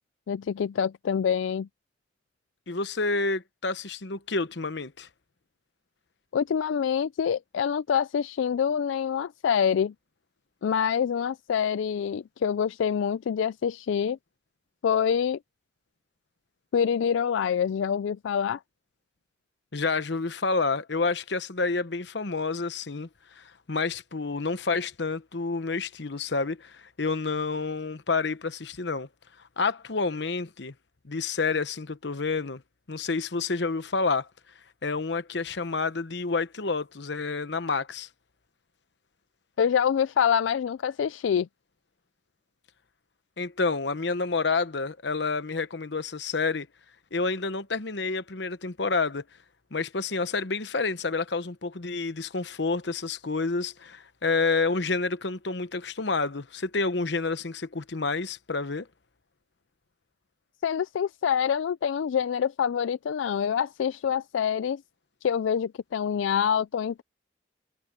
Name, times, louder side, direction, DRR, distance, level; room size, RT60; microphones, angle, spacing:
voice 1, 0.3-1.7 6.3-9.9 10.6-14.2 14.8-15.4 16.7-18.6 39.6-41.5 60.6-64.8 65.2-67.0, left 7 dB, 85° left, 0.3 m, -26 dB
voice 2, 2.7-5.1 19.7-23.1 23.4-29.1 29.6-30.7 31.0-32.6 32.9-34.3 34.8-38.1 43.4-46.7 47.1-49.2 49.7-58.9, left 4 dB, 65° left, 1.0 m, -29 dB
head